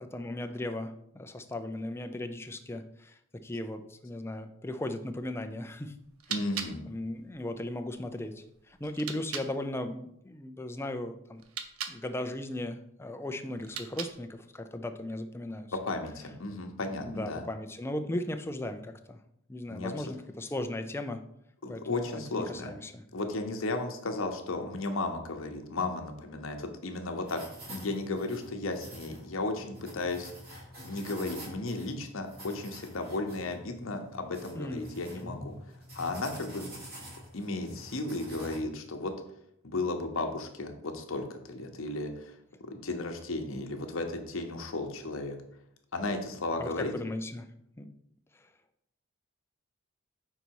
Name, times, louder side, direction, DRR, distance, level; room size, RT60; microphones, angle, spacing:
voice 1, 0.0-5.9 6.9-11.4 11.9-15.8 17.0-19.2 19.5-21.2 21.7-23.0 34.5-34.9 35.2-35.3 46.6-47.5 47.8-47.9 48.3-48.5, left 1 dB, 10° left, 7 dB, 0.4 m, -37 dB
sound 1, 6.0-9.5 11.3-12.0 13.6-14.4, right 7 dB, 85° right, 0.7 m, -41 dB
voice 2, 6.3-6.8 15.8-17.4 19.7-19.9 21.6-22.7 23.1-30.3 30.8-35.5 35.9-36.7 37.3-39.1 39.6-42.4 42.7-45.4 45.9-46.9, left 2 dB, 70° left, 4 dB, 0.9 m, -34 dB
sound 2, 27.2-38.6, equal, 45° right, 2.2 m, -47 dB
5.6 x 4.0 x 4.6 m, 0.77 s
head